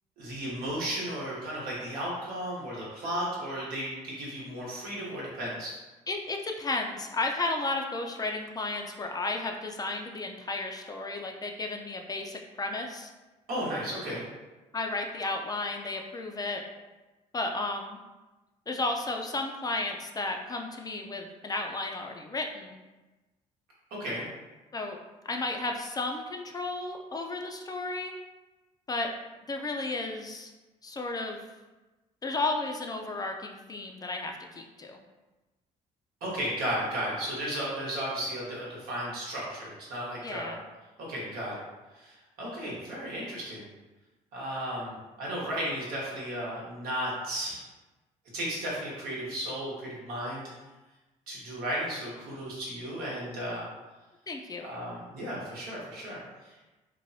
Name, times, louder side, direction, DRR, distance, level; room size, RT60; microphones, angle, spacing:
voice 1, 0.2-5.7 13.5-14.2 24.0-24.2 36.2-40.5 41.1-41.6 41.9-43.7 44.3-47.6 48.3-50.4 51.3-53.7 54.6-56.7, equal, 80° right, -5 dB, 1.1 m, -34 dB
voice 2, 6.1-13.1 13.8-13.9 14.7-16.6 17.3-18.0 18.7-22.8 24.7-25.0 25.2-28.1 28.9-29.1 29.4-30.5 30.8-31.4 32.2-35.0 40.2-40.6 54.3-54.7, left 2 dB, 25° left, 3 dB, 0.4 m, -33 dB
3.2 x 2.1 x 2.6 m, 1.1 s
supercardioid pair, 75°, 15 cm